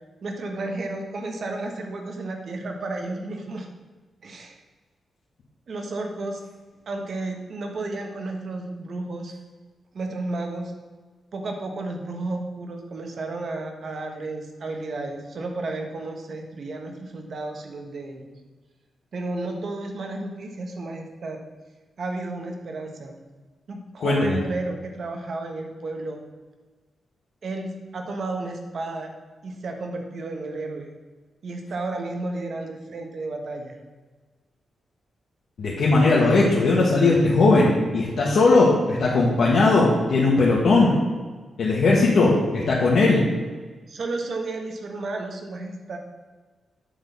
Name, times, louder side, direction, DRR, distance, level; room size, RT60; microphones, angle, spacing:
voice 1, 0.2-3.7 4.2-4.6 5.7-6.4 6.9-9.3 9.9-10.7 11.3-18.3 19.1-21.4 22.0-23.1 23.7-26.2 27.4-29.1 29.4-30.9 31.4-33.8 43.9-46.0, right 2 dB, 60° right, 3 dB, 1.4 m, -32 dB
voice 2, 24.0-24.4 35.6-40.9 41.6-43.2, left 3 dB, 70° left, -6 dB, 1.6 m, -18 dB
8.7 x 4.0 x 7.0 m, 1.3 s
cardioid pair, 85°, 0 cm